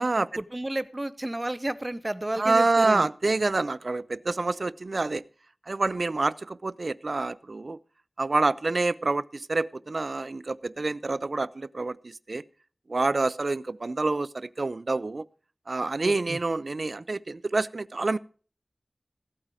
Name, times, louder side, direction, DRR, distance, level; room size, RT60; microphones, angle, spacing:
voice 1, 0.4-3.1 16.0-16.4, right 1 dB, 35° right, 0.8 m, -32 dB
voice 2, 2.4-5.2 5.7-7.8 8.2-12.4 12.9-15.2 15.7-18.2, right 3 dB, 80° right, 0.5 m, -27 dB
15.5 x 9.0 x 4.9 m
wide cardioid pair, 45°, 0 cm